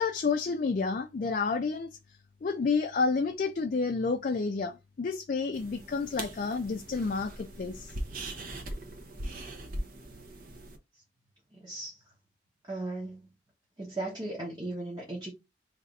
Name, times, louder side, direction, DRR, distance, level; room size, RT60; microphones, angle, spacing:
voice 1, 0.0-1.9 2.4-7.9, left 4 dB, 45° left, 0.4 m, -30 dB
sound 1, 5.5-10.8, right 1 dB, 50° right, 0.8 m, -40 dB
voice 2, 11.5-12.0 12.7-13.3 13.8-15.3, right 2 dB, 25° right, 1.0 m, -37 dB
3.3 x 2.5 x 4.0 m
head